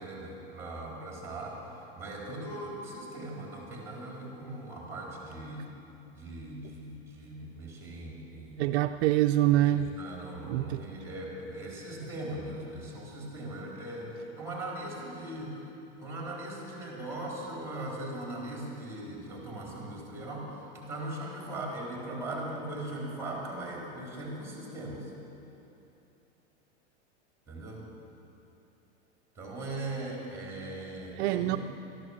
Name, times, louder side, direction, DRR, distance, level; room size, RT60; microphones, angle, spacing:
voice 1, 0.0-5.7 6.1-8.7 9.5-15.5 16.0-25.1 27.5-27.8 29.3-31.6, right 1 dB, 10° right, -2 dB, 4.0 m, -39 dB
voice 2, 8.6-9.9 10.4-10.9 31.2-31.6, right 14 dB, 65° right, 8 dB, 0.5 m, -25 dB
13.5 x 11.0 x 7.3 m, 3.0 s
supercardioid pair, 130°, 34 cm